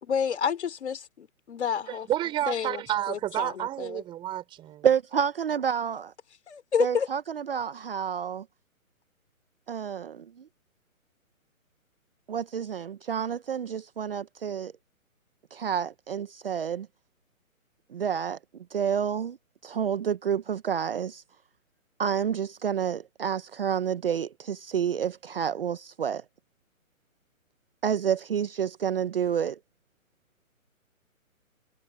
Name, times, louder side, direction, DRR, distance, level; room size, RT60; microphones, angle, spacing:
voice 1, 0.0-2.1 2.5-4.0 6.5-7.1, left 7 dB, 50° left, 3.9 m, -30 dB
voice 2, 1.9-4.9, right 13 dB, 10° right, 5.5 m, -30 dB
voice 3, 4.8-6.1 6.8-8.4 9.7-10.5 12.3-14.7 15.5-16.9 17.9-18.4 18.7-19.4 19.6-21.2 22.0-26.2 27.8-29.6, right 8 dB, 40° right, 1.0 m, -29 dB
hypercardioid pair, 165°, 42 cm